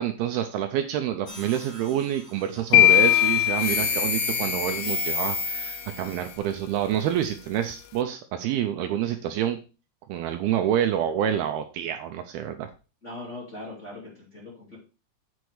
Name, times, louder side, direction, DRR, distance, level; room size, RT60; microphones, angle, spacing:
voice 1, 0.0-9.6 10.1-12.7, right 10 dB, 80° right, 7 dB, 2.4 m, -27 dB
sound 1, 1.3-2.2 2.7-6.3, left 3 dB, 40° left, 1.5 m, -31 dB
sound 2, 2.7-4.9, left 15 dB, 80° left, 2.6 m, -20 dB
voice 2, 13.0-14.8, left 2 dB, 20° left, -4 dB, 2.1 m, -40 dB
8.1 x 6.1 x 4.8 m, 0.34 s
omnidirectional pair, 4.9 m